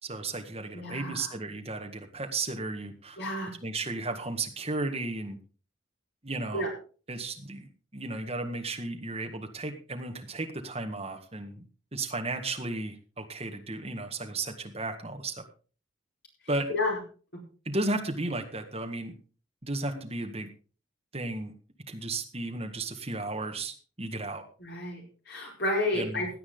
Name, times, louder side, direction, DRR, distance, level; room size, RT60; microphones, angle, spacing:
voice 1, 0.0-3.2 3.6-5.4 6.2-6.7 7.1-11.6 11.9-15.4 16.5-16.7 17.7-19.1 19.6-20.5 21.1-21.5 21.9-24.4 25.9-26.2, right 2 dB, 30° right, 4 dB, 1.8 m, -34 dB
voice 2, 0.7-1.3 3.2-3.5 6.5-6.7 16.7-16.9 17.3-17.4 24.6-26.3, left 2 dB, 55° left, 0 dB, 4.6 m, -31 dB
17.0 x 10.0 x 3.9 m, 0.38 s
head